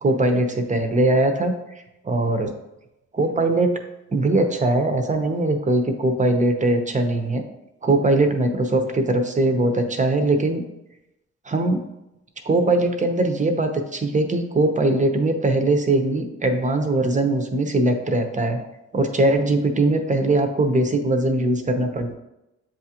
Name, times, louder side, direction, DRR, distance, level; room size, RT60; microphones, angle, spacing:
voice 1, 0.0-1.5 2.0-2.5 3.1-3.7 4.1-7.4 7.8-10.6 11.5-11.8 12.4-18.6 18.9-22.1, right 2 dB, 25° right, 5 dB, 0.7 m, -21 dB
7.3 x 2.4 x 2.9 m, 0.91 s
cardioid pair, 70°, 30 cm